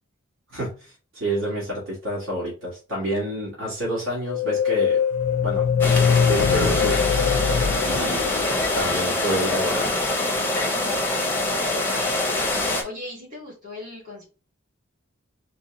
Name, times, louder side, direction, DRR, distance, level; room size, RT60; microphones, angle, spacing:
voice 1, 0.5-5.0 5.3-5.7 5.9-7.1 7.8-8.4 8.7-9.9, right 1 dB, 70° right, -5 dB, 1.7 m, -28 dB
sound 1, 4.3-8.9, left 7 dB, 80° left, 0.3 m, -22 dB
sound 2, 5.8-12.8, left 2 dB, 10° left, 0.6 m, -24 dB
voice 2, 7.8-8.2 11.9-14.2, left 2 dB, 40° right, -4 dB, 2.2 m, -38 dB
4.0 x 2.2 x 3.8 m, 0.35 s
head